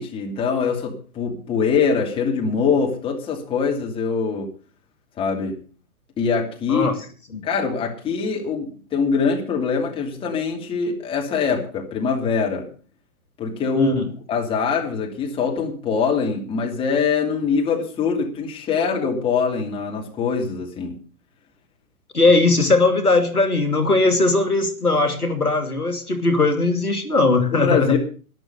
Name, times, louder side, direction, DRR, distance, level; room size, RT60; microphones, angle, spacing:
voice 1, 0.0-4.5 5.2-5.6 6.2-6.9 7.4-12.7 13.4-13.9 14.3-21.0 27.5-28.0, left 5 dB, 10° left, 1 dB, 2.7 m, -23 dB
voice 2, 13.8-14.1 22.1-28.0, left 3 dB, 75° left, 7 dB, 2.8 m, -19 dB
12.5 x 11.5 x 6.7 m, 0.39 s
figure-of-eight pair, 125°, 45 cm